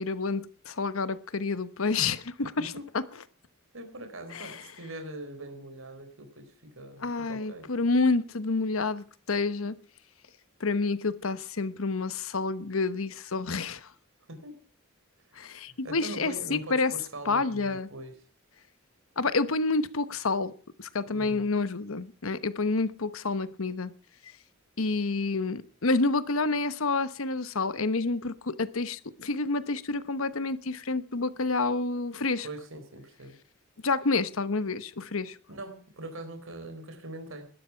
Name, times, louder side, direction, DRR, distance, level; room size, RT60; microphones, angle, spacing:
voice 1, 0.0-2.7 4.3-4.7 7.0-9.7 10.6-13.9 15.4-16.9 17.2-17.9 19.2-20.5 20.8-23.9 24.8-32.5 33.8-35.4, left 3 dB, 80° left, 1.1 m, -29 dB
voice 2, 3.7-6.5 6.8-7.7 14.3-14.5 15.8-18.1 21.1-21.5 32.4-33.3 35.5-37.4, right 1 dB, 75° right, 4.0 m, -42 dB
20.0 x 12.5 x 5.8 m
head